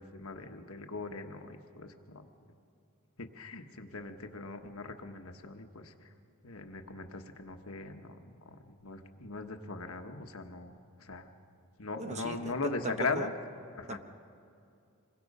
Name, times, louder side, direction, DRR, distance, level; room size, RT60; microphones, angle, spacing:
voice 1, 0.0-2.3 3.2-6.1 6.4-10.7 11.0-11.3 11.8-13.3 13.7-14.0, left 3 dB, 70° left, 5 dB, 1.3 m, -39 dB
voice 2, 12.0-12.5 12.8-13.3 13.9-14.0, right 2 dB, 35° right, 8 dB, 1.0 m, -38 dB
27.0 x 22.0 x 5.5 m, 2.5 s
head